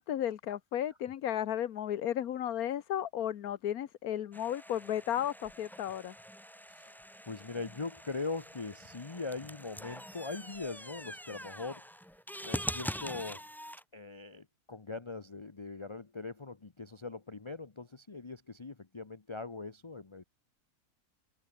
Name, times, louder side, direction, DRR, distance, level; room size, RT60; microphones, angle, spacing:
voice 1, 0.0-6.1, left 10 dB, 90° left, 1.4 m, -34 dB
sound 1, 4.3-13.8, equal, ahead, 2.3 m, -44 dB
voice 2, 7.2-11.8 12.4-13.4 13.9-20.2, left 3 dB, 25° left, 0.9 m, -41 dB
open air
omnidirectional pair, 1.5 m